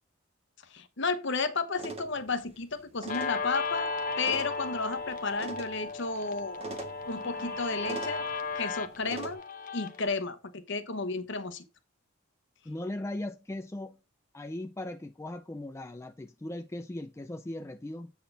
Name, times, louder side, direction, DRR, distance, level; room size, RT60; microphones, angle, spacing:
voice 1, 0.7-3.9 4.2-6.6 7.1-8.2 8.5-9.4 9.7-11.6, left 4 dB, 55° left, 1.0 m, -32 dB
sound 1, 1.7-9.3, right 3 dB, 25° right, 1.4 m, -44 dB
Guitar, 3.1-10.1, left 4 dB, 40° left, 0.8 m, -35 dB
voice 2, 12.7-14.0 14.3-18.1, left 1 dB, 15° left, 0.3 m, -38 dB
8.4 x 4.1 x 5.4 m
head